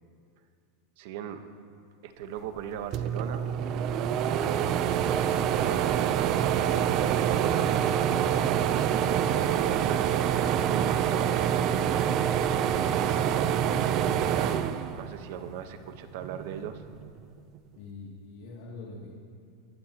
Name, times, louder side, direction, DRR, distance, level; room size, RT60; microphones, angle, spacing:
voice 1, 1.0-1.4 2.0-3.5 4.1-4.6 5.2-11.5 12.5-13.6 14.0-16.8, right 9 dB, 60° right, 8 dB, 1.0 m, -40 dB
sound 1, 2.6-2.7 2.9-15.5 16.0-17.1, right 9 dB, 35° right, 0.5 m, -26 dB
voice 2, 4.5-4.9 12.6-13.2 17.7-19.2, left 3 dB, 65° left, -4 dB, 2.5 m, -45 dB
22.5 x 15.0 x 2.9 m, 2.4 s
supercardioid pair, 160°, 0 cm